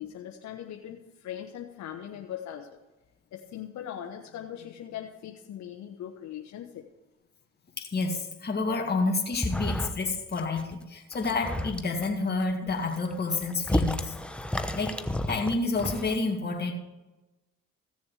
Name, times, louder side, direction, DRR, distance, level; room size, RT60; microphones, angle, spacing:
voice 1, 0.0-2.8 3.3-6.8, left 10 dB, 75° left, 2 dB, 1.1 m, -40 dB
voice 2, 7.8-14.2 14.7-14.9 15.3-16.7, left 3 dB, 35° left, 0 dB, 2.2 m, -29 dB
sound 1, 9.3-10.1 10.3-10.7 11.1-12.1 12.7-16.1, left 1 dB, 5° left, 0.9 m, -32 dB
15.5 x 7.0 x 4.8 m, 1.1 s
supercardioid pair, 75°, 29 cm